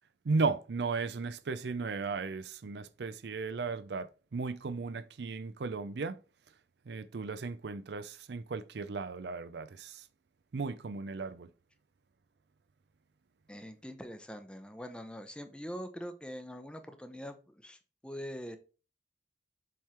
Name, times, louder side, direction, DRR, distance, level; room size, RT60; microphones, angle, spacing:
voice 1, 0.3-6.2 6.9-10.0 10.5-11.5, right 4 dB, 70° right, 0.5 m, -35 dB
voice 2, 13.5-18.6, equal, 5° left, 0.7 m, -43 dB
7.5 x 3.7 x 4.3 m
head